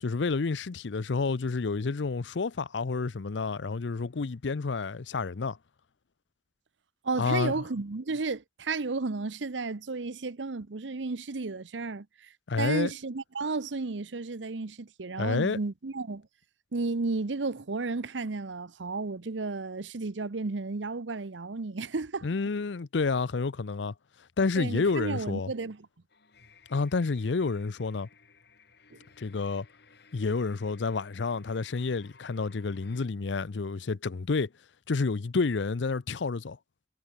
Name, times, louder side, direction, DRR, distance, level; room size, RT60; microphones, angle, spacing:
voice 1, 0.0-5.6 7.2-7.5 12.5-12.9 15.2-15.6 22.2-23.9 24.4-25.5 26.7-28.1 29.2-29.7 30.1-34.5 34.9-36.6, left 4 dB, 80° left, 0.6 m, -29 dB
voice 2, 7.0-12.1 12.6-16.2 16.7-22.3 24.6-25.9 28.9-29.0, right 3 dB, 85° right, 0.8 m, -33 dB
sound 1, 26.1-33.1, left 5 dB, 65° left, 4.7 m, -58 dB
head